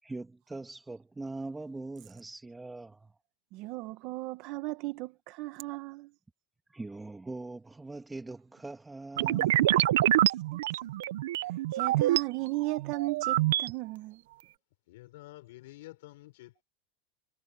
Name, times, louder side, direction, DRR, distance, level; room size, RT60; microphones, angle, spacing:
voice 1, 0.0-3.1 6.7-10.2, right 2 dB, 10° right, 2.4 m, -42 dB
voice 2, 3.5-6.1 10.5-10.6 11.7-14.2, right 21 dB, 50° right, 1.4 m, -36 dB
sound 1, 9.2-12.2 12.7-13.7, right 14 dB, 85° right, 0.7 m, -26 dB
voice 3, 14.9-16.6, left 18 dB, 75° left, 5.4 m, -49 dB
supercardioid pair, 145°, 0 cm